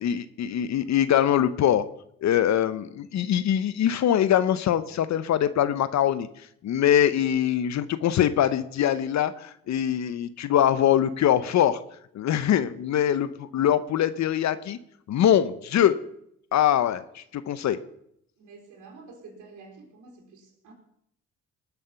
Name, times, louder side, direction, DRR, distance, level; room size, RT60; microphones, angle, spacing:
voice 1, 0.0-1.8 2.2-6.3 6.6-11.8 12.1-14.8 15.1-15.9 16.5-17.8, left 10 dB, 65° left, 14 dB, 0.8 m, -23 dB
voice 2, 18.4-20.7, right 4 dB, 80° right, -1 dB, 3.7 m, -48 dB
19.5 x 7.1 x 5.8 m, 0.72 s
cardioid pair, 90°, 30 cm